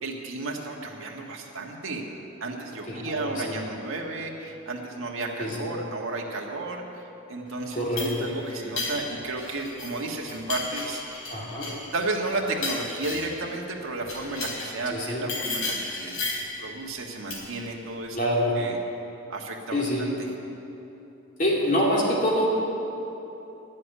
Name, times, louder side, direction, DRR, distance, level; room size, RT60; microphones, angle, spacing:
voice 1, 0.0-2.0 2.4-7.0 7.3-11.4 11.6-16.2 16.6-18.2 18.6-18.8 19.3-20.1, right 2 dB, 70° right, 0 dB, 1.6 m, -33 dB
voice 2, 2.9-3.7 5.4-5.7 7.7-8.3 11.3-11.7 14.9-15.2 18.1-18.5 19.7-20.1 21.4-22.5, equal, 40° left, -4 dB, 2.6 m, -26 dB
sound 1, 7.6-10.0 10.3-13.4 14.0-14.8 15.3-16.5 17.3-17.6, left 3 dB, 70° left, 3.5 m, -33 dB
11.5 x 7.6 x 10.0 m, 3.0 s
head